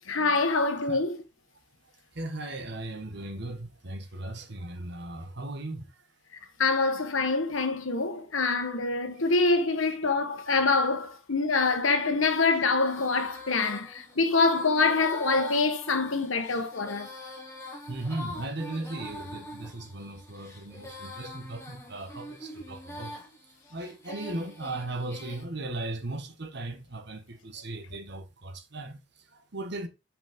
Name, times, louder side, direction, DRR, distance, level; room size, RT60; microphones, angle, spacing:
voice 1, 0.1-1.2 6.6-17.1, left 3 dB, 80° left, 1.3 m, -25 dB
voice 2, 2.1-5.9 17.9-23.2 23.7-29.9, right 2 dB, 55° right, 1.5 m, -37 dB
Female singing, 11.8-25.4, left 1 dB, 15° left, 2.2 m, -44 dB
7.9 x 5.3 x 3.7 m
head